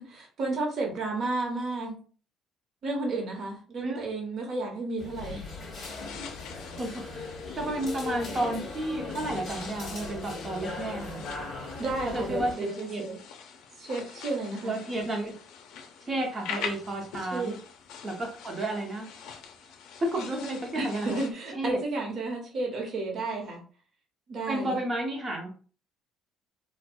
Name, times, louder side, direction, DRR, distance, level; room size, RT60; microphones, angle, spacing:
voice 1, 0.0-2.0 2.8-5.5 11.8-13.2 13.8-14.7 17.3-17.5 20.7-23.6 24.3-24.8, right 2 dB, 45° right, 0 dB, 1.0 m, -32 dB
sound 1, 5.0-12.6, left 3 dB, 35° left, 1.4 m, -38 dB
sound 2, 5.8-21.3, left 7 dB, 75° left, 0.5 m, -44 dB
voice 2, 7.6-11.2 12.0-12.5 12.9-13.0 14.6-15.3 16.0-17.6 18.0-19.1 20.0-21.1 21.5-21.8 24.5-25.5, right 1 dB, 20° right, 1 dB, 0.8 m, -31 dB
4.3 x 2.2 x 2.2 m, 0.40 s
cardioid pair, 170°, 0 cm